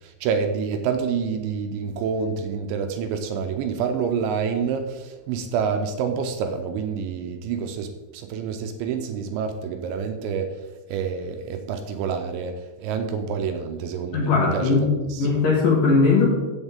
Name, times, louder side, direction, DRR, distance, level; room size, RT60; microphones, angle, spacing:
voice 1, 0.0-15.3, right 6 dB, 80° right, 6 dB, 2.8 m, -28 dB
voice 2, 14.1-14.9 15.2-16.3, left 4 dB, 60° left, -2 dB, 2.6 m, -19 dB
15.5 x 7.1 x 3.6 m, 1.2 s
omnidirectional pair, 5.7 m